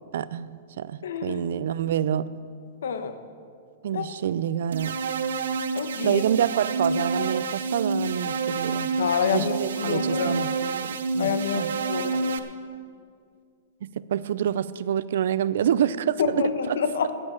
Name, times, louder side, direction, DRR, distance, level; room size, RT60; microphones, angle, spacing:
voice 1, 0.1-0.5 0.8-2.3 3.8-5.0 6.0-8.9 9.3-11.7 13.8-16.8, right 9 dB, 60° right, 17 dB, 0.5 m, -27 dB
voice 2, 1.0-1.6 2.8-3.2 3.9-4.2 5.7-6.2 9.0-10.4 11.2-12.2 16.2-17.1, left 6 dB, 80° left, 9 dB, 1.2 m, -27 dB
sound 1, 4.7-12.4, right 4 dB, 85° right, 0.9 m, -28 dB
11.0 x 8.6 x 8.6 m, 2.2 s
supercardioid pair, 170°, 0 cm